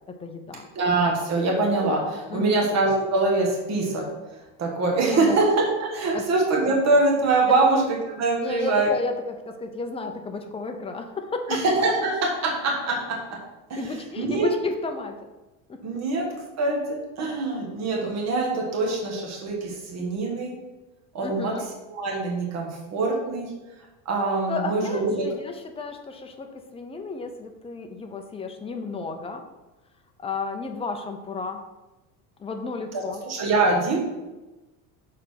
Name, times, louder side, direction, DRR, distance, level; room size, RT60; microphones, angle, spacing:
voice 1, 0.0-0.7 2.3-2.7 5.1-5.4 6.1-6.3 7.5-7.6 8.4-11.6 13.8-15.3 15.7-16.0 21.2-21.6 24.5-29.4 30.2-31.6 32.4-33.2, left 3 dB, 15° left, 5 dB, 0.6 m, -32 dB
voice 2, 0.7-4.1 4.6-8.9 11.5-13.4 13.7-13.8 14.2-14.5 15.8-20.6 21.1-21.6 21.9-23.5 24.0-25.3 32.9-34.0, right 3 dB, 40° right, 0 dB, 1.5 m, -24 dB
6.6 x 4.1 x 5.6 m, 1.1 s
cardioid pair, 145°, 40 cm